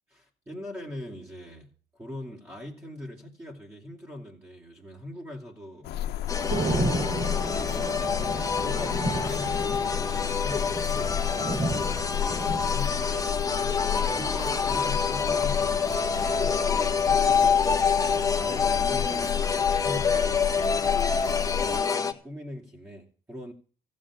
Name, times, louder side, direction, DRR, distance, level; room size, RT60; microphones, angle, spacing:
voice 1, 0.1-17.6 18.0-20.7 21.2-23.5, left 1 dB, 15° right, 3.0 m, -42 dB
sound 1, 5.8-21.8, left 11 dB, 75° left, 1.1 m, -32 dB
sound 2, 6.3-22.1, left 5 dB, 20° left, 1.5 m, -27 dB
Thunder / Rain, 6.5-16.4, right 2 dB, 60° right, 4.8 m, -34 dB
15.0 x 7.5 x 8.8 m
cardioid pair, 110°, 17 cm